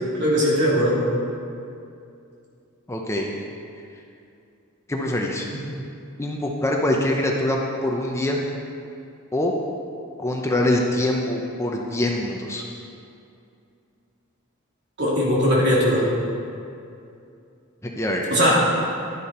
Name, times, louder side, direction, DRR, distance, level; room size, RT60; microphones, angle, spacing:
voice 1, 0.1-1.0 15.0-16.0 18.3-18.5, equal, 55° right, -5 dB, 3.1 m, -19 dB
voice 2, 2.9-3.3 4.9-5.5 6.2-8.4 9.3-9.5 10.2-12.6 17.8-18.5, left 1 dB, 15° left, 0 dB, 0.8 m, -24 dB
11.5 x 10.5 x 4.4 m, 2.5 s
head